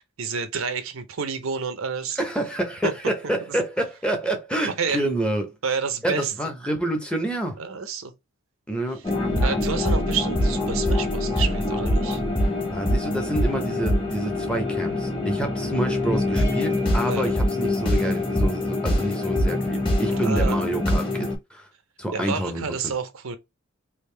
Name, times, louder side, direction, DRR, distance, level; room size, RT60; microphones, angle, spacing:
voice 1, 0.2-2.2 2.8-2.9 4.7-5.0 5.6-6.3 7.6-8.1 9.4-12.2 17.1-17.3 20.1-20.7 22.1-23.4, right 5 dB, 65° right, 0.6 m, -29 dB
voice 2, 2.2-5.5 6.0-7.6 8.7-9.1 12.7-21.7 22.0-22.6, right 1 dB, 5° left, 0.7 m, -28 dB
sound 1, 9.0-21.4, left 1 dB, 25° left, 1.2 m, -24 dB
3.5 x 2.5 x 3.2 m
head